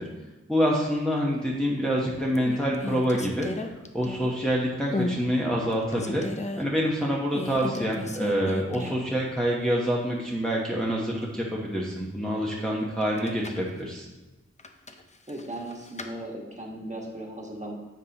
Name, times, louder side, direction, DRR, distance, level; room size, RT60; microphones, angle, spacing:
voice 1, 0.5-3.5 3.9-6.2 6.6-14.1, equal, ahead, -4 dB, 1.0 m, -26 dB
sound 1, 1.6-1.9 2.3-4.5 4.9-5.2 5.6-6.6 7.3-9.1 9.4-9.5 13.0-13.7 14.6-16.1, left 2 dB, 25° left, 0.6 m, -35 dB
voice 2, 15.3-17.7, right 1 dB, 25° right, -1 dB, 1.5 m, -37 dB
9.4 x 5.4 x 2.9 m, 1.1 s
wide cardioid pair, 65°, 29 cm